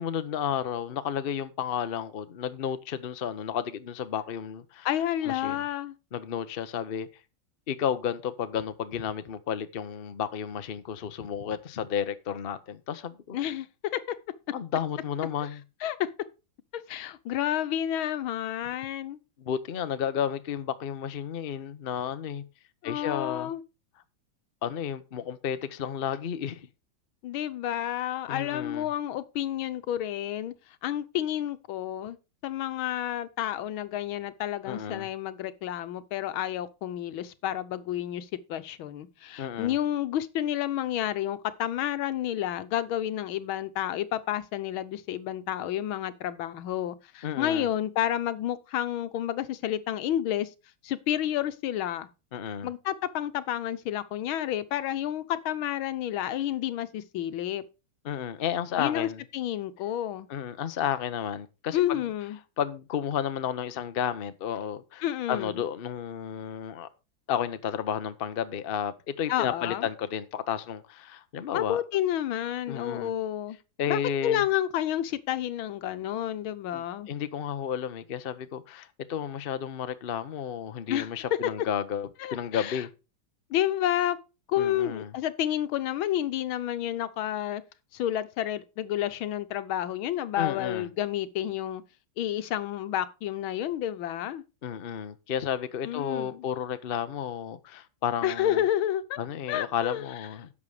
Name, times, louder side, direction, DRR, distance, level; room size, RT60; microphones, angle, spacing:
voice 1, 0.0-4.9 5.2-5.6 6.1-7.1 7.7-13.4 14.5-15.6 19.4-22.4 22.8-23.5 24.6-26.7 28.3-28.9 34.7-35.1 39.4-39.8 47.2-47.7 52.3-52.7 58.0-59.2 60.3-62.1 62.6-66.9 67.3-71.8 72.7-73.1 73.8-74.4 76.7-82.9 84.6-85.1 90.4-90.9 94.6-98.6 99.2-100.5, left 8 dB, 50° left, 0.6 m, -32 dB
voice 2, 4.8-5.9 13.3-13.7 13.9-14.0 15.4-15.5 15.8-16.1 16.7-19.2 22.8-23.6 27.2-30.5 30.8-32.2 32.4-50.5 50.8-52.1 52.6-57.6 58.8-60.3 61.7-62.4 65.0-65.5 69.3-69.9 71.5-73.6 73.9-77.1 80.9-81.1 82.2-82.8 83.5-84.2 84.5-87.6 87.9-91.8 92.2-94.4 95.8-96.4 98.2-99.2 99.5-100.1, left 11 dB, 90° left, 1.7 m, -30 dB
10.5 x 6.8 x 4.9 m
omnidirectional pair, 2.2 m